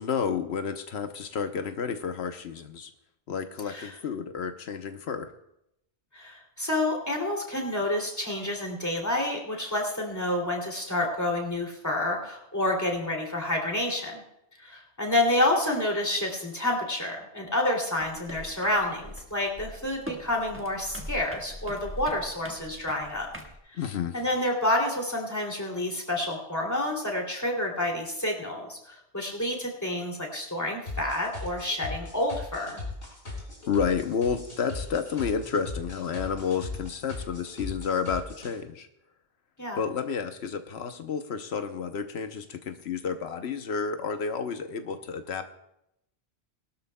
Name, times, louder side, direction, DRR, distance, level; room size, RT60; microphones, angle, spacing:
voice 1, 0.0-2.9 3.3-5.3 23.8-24.1 33.7-38.9 39.8-45.5, left 6 dB, 90° left, 7 dB, 1.1 m, -31 dB
voice 2, 6.1-14.2 14.6-23.3 24.1-32.8 39.6-39.8, left 1 dB, 15° left, 0 dB, 2.7 m, -29 dB
sound 1, 18.0-23.6, equal, 10° right, 1.4 m, -42 dB
sound 2, 30.9-38.5, left 3 dB, 70° left, 4.7 m, -38 dB
20.5 x 12.5 x 2.2 m, 0.81 s
omnidirectional pair, 1.1 m